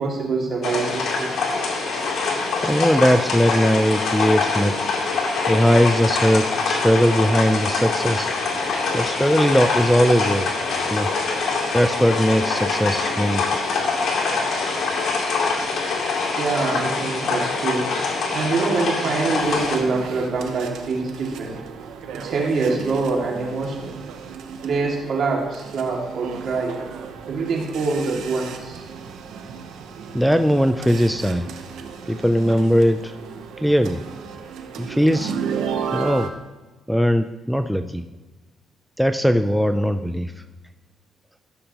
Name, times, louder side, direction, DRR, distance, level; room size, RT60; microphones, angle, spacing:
voice 1, 0.0-1.3 16.4-17.9 18.3-21.6 22.1-24.0 24.6-26.8 27.3-28.8, right 4 dB, 60° right, -1 dB, 2.3 m, -25 dB
sound 1, 0.6-19.8, left 4 dB, 65° left, 2.6 m, -24 dB
voice 2, 2.6-4.7 5.5-8.3 8.9-10.5 10.9-11.1 11.7-13.5 30.1-31.5 32.1-33.1 33.6-34.0 34.8-35.4 35.9-36.3 36.9-38.0 39.0-40.3, equal, ahead, 8 dB, 0.4 m, -19 dB
sound 2, 19.4-36.3, right 6 dB, 85° right, 0.9 m, -34 dB
13.5 x 6.7 x 3.0 m, 1.2 s
cardioid pair, 90°, 0 cm